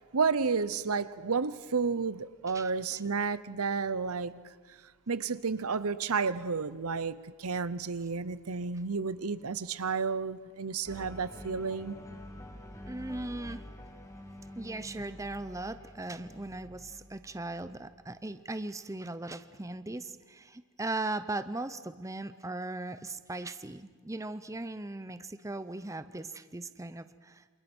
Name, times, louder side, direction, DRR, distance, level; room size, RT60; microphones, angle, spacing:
voice 1, 0.1-4.4 5.1-12.0, right 5 dB, 80° right, 0.9 m, -31 dB
sound 1, 10.8-19.0, left 1 dB, 15° left, 2.0 m, -47 dB
voice 2, 12.9-13.7 14.6-27.5, right 2 dB, 15° right, 0.7 m, -38 dB
28.0 x 27.5 x 6.2 m
head